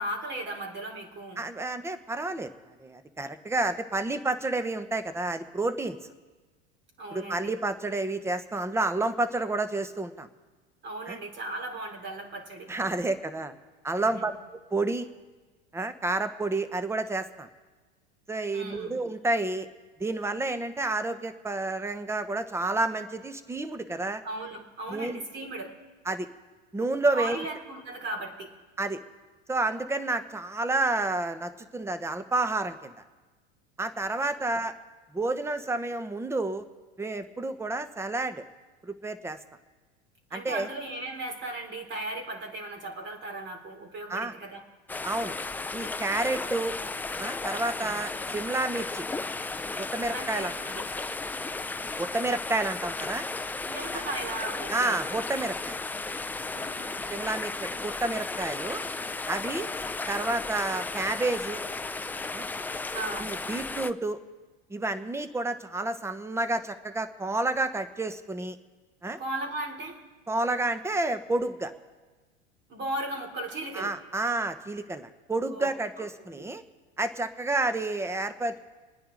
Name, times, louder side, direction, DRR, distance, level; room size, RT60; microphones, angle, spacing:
voice 1, 0.0-1.4 7.0-7.5 10.8-12.7 14.1-14.2 18.5-18.9 24.2-25.7 27.1-28.5 40.3-44.6 47.8-48.1 50.1-50.8 53.6-55.0 56.5-57.1 62.9-63.3 69.2-70.0 72.7-73.9 75.5-76.0 76.4-76.5, right 2 dB, 40° right, 2 dB, 3.3 m, -36 dB
voice 2, 1.4-2.5 2.8-6.0 7.1-10.3 11.1-11.2 12.7-13.5 13.8-15.1 15.7-17.5 18.3-19.7 20.0-24.2 24.9-25.2 26.0-26.3 26.7-27.4 28.8-29.0 29.5-32.9 33.8-34.7 35.1-36.6 37.0-38.4 38.8-39.4 40.3-40.7 44.1-44.3 45.0-45.4 45.7-46.8 47.2-49.1 49.8-50.5 52.0-53.3 53.9-54.0 54.7-55.8 57.1-58.8 59.3-59.7 60.1-61.6 62.3-62.5 63.2-64.2 64.7-68.6 69.0-69.2 70.3-71.7 73.7-76.6 77.0-78.6, right 2 dB, 10° right, 11 dB, 1.0 m, -30 dB
sound 1, 44.9-63.9, left 3 dB, 5° left, 0.4 m, -34 dB
28.0 x 9.8 x 3.9 m, 1.3 s
hypercardioid pair, 95°, 29 cm